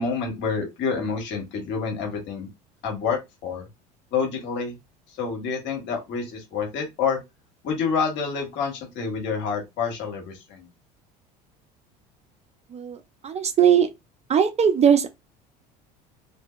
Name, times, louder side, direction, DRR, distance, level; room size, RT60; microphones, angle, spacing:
voice 1, 0.0-2.5 2.8-3.6 4.1-4.8 5.2-7.2 7.6-10.7, left 5 dB, 60° left, 1.3 m, -28 dB
voice 2, 12.7-13.9 14.3-15.1, right 8 dB, 30° right, 0.5 m, -20 dB
2.8 x 2.6 x 2.4 m
hypercardioid pair, 80°, 21 cm